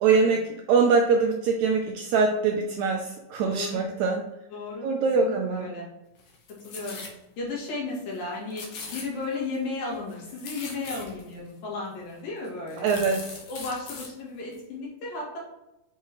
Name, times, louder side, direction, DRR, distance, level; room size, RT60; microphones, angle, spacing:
voice 1, 0.0-4.2 4.8-5.7 12.8-13.2, right 4 dB, 80° right, 2 dB, 1.6 m, -23 dB
voice 2, 3.4-3.8 4.5-4.9 5.2-5.9 6.6-7.0 7.4-13.2 13.5-15.4, left 3 dB, 90° left, -4 dB, 3.7 m, -34 dB
sound 1, 6.2-7.2 7.6-7.7 8.0-8.2 8.5-9.6 9.9-11.3 12.0-12.1 12.4-14.1 14.5-14.6, left 4 dB, 65° left, 1.4 m, -41 dB
7.2 x 4.7 x 3.0 m, 0.95 s
omnidirectional pair, 3.9 m